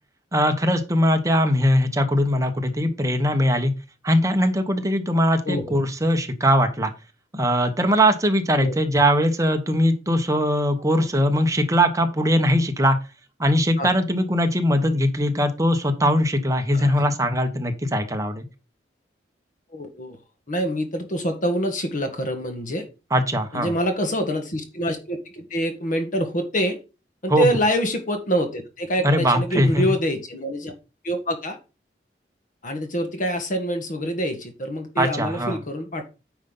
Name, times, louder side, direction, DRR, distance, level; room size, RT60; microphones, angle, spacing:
voice 1, 0.3-3.7 4.0-6.9 7.3-13.0 13.4-18.4 23.1-23.7 27.3-27.5 29.0-29.8 35.0-35.6, equal, 20° right, 6 dB, 1.2 m, -21 dB
voice 2, 5.4-5.8 8.6-8.7 11.0-11.1 13.8-13.9 16.7-17.0 19.7-20.2 20.5-22.9 23.5-26.8 27.2-30.7 31.0-31.6 32.6-36.0, equal, 50° left, 6 dB, 1.5 m, -26 dB
9.4 x 5.3 x 3.9 m, 0.30 s
head